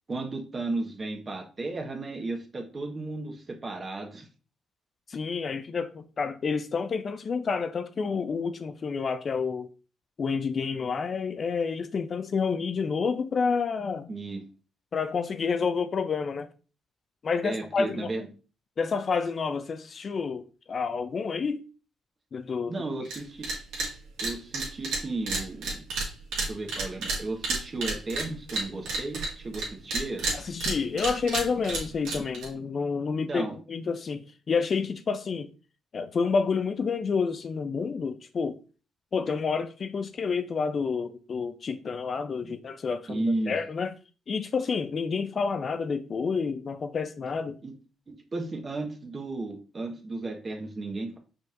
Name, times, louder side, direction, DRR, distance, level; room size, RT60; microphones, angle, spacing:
voice 1, 0.1-4.3 14.1-14.5 17.4-18.3 22.7-23.5 24.2-25.8 26.5-30.3 33.3-33.6 42.4-42.5 43.1-43.6 47.6-47.7 48.1-51.2, right 2 dB, 35° right, 1.2 m, -34 dB
voice 2, 5.1-9.7 10.2-14.1 14.9-16.5 17.2-18.1 18.8-21.6 22.3-22.7 30.3-35.5 35.9-38.6 39.1-43.9 44.3-47.5, left 5 dB, 45° left, 0.4 m, -29 dB
sound 1, 23.0-23.2 23.4-23.9 24.2-29.7 29.9-32.5, right 3 dB, 90° right, 1.7 m, -30 dB
5.2 x 4.2 x 2.5 m
cardioid pair, 90°, 0 cm